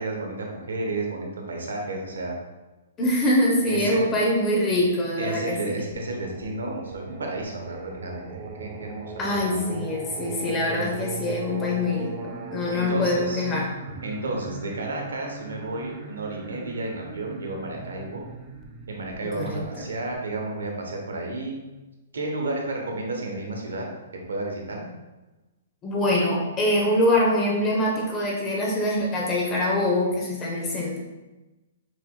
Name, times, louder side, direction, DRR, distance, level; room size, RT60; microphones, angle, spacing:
voice 1, 0.0-2.4 3.7-4.1 5.2-9.6 10.7-10.9 12.7-13.5 14.0-18.2 18.9-21.6 22.1-23.9 24.3-24.9, right 2 dB, 85° right, 1 dB, 1.0 m, -32 dB
voice 2, 3.0-5.8 9.2-13.7 19.4-19.9 25.8-31.0, left 1 dB, 20° left, -3 dB, 0.9 m, -24 dB
Singing, 5.9-20.6, right 3 dB, 25° right, 0.5 m, -39 dB
6.4 x 2.8 x 2.3 m, 1.1 s
hypercardioid pair, 135°, 0 cm